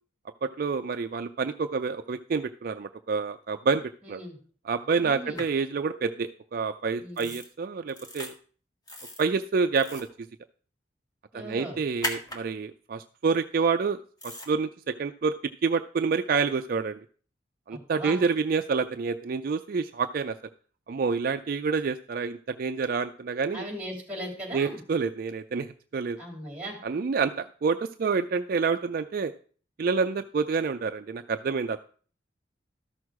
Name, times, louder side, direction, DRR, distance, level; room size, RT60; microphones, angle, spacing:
voice 1, 0.4-4.2 4.6-8.3 9.2-10.3 11.3-15.3 15.6-17.0 17.7-20.4 20.9-23.7 24.5-25.7 25.9-26.2 26.8-29.3 29.8-31.8, right 5 dB, 55° right, 8 dB, 0.4 m, -28 dB
voice 2, 4.0-4.4 5.0-5.4 7.0-7.3 11.3-11.8 17.7-18.2 23.5-24.8 26.2-26.8, right 1 dB, 5° right, 1 dB, 3.3 m, -38 dB
sound 1, 5.3-5.4 7.2-7.5 7.9-8.3 8.9-9.2 9.7-10.1 12.0-12.4 14.2-14.5, left 1 dB, 20° left, 1.7 m, -36 dB
13.0 x 6.3 x 4.7 m, 0.43 s
head